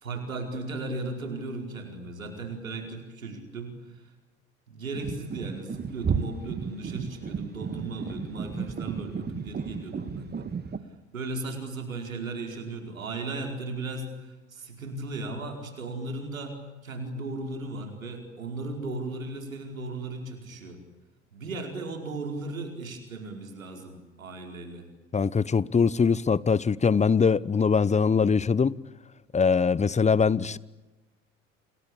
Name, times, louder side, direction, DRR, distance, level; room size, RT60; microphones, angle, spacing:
voice 1, 0.0-4.1 4.7-10.5 11.1-20.8 21.3-24.9, right 2 dB, 85° right, 4.9 m, -36 dB
sound 1, 4.9-10.8, right 6 dB, 25° right, 2.0 m, -33 dB
voice 2, 25.1-28.8 29.3-30.6, left 5 dB, 15° left, 0.9 m, -22 dB
29.5 x 22.0 x 8.7 m
hypercardioid pair, 70°, 39 cm